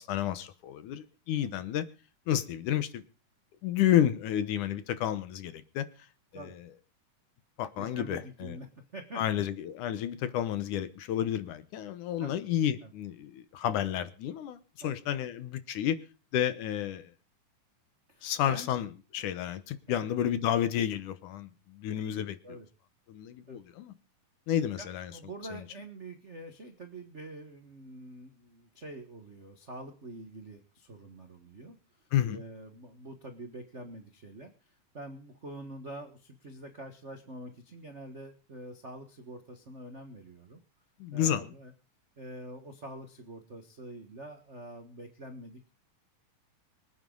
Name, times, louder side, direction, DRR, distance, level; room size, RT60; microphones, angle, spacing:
voice 1, 0.0-1.9 2.3-3.0 3.6-5.9 6.3-6.7 7.6-8.6 9.2-16.0 16.3-17.1 18.2-22.4 23.1-23.9 24.5-25.1 25.5-25.7 32.1-32.4 41.0-41.5, left 11 dB, 70° left, 2.4 m, -31 dB
voice 2, 7.8-9.4 12.2-12.4 12.8-12.9 14.8-14.9 18.1-18.7 19.9-20.1 22.4-22.7 23.5-23.6 24.8-31.8 32.2-40.6 41.1-41.7 42.2-45.7, right 1 dB, 65° right, 0.7 m, -46 dB
25.0 x 9.4 x 3.9 m
omnidirectional pair, 3.9 m